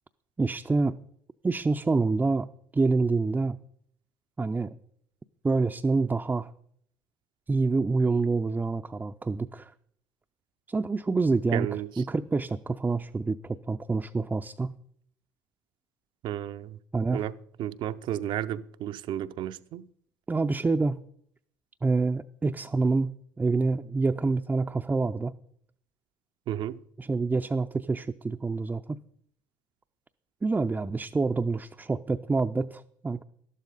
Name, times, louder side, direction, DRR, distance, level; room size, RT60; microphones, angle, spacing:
voice 1, 0.4-1.0 1.4-2.5 2.7-3.6 4.4-4.8 5.4-6.5 7.5-9.7 10.7-14.7 16.9-17.2 20.3-21.0 21.8-25.3 27.0-29.0 30.4-33.2, right 3 dB, 15° right, 0.5 m, -27 dB
voice 2, 11.5-11.9 16.2-16.8 17.1-17.3 17.6-19.9 26.5-26.8, right 12 dB, 60° right, 0.6 m, -32 dB
12.0 x 11.5 x 4.0 m
hypercardioid pair, 65°, 9 cm